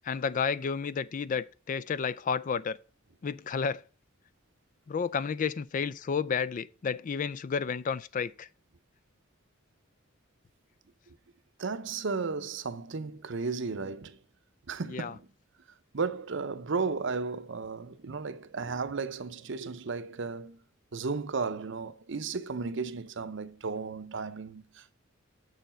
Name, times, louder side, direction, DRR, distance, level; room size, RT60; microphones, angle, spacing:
voice 1, 0.0-2.8 3.2-3.8 4.9-8.5 14.8-15.2, left 6 dB, 40° left, 0.3 m, -31 dB
voice 2, 11.6-14.2 14.7-15.3 15.9-20.6 20.9-24.9, right 4 dB, 60° right, 0.7 m, -34 dB
6.9 x 6.5 x 4.3 m
head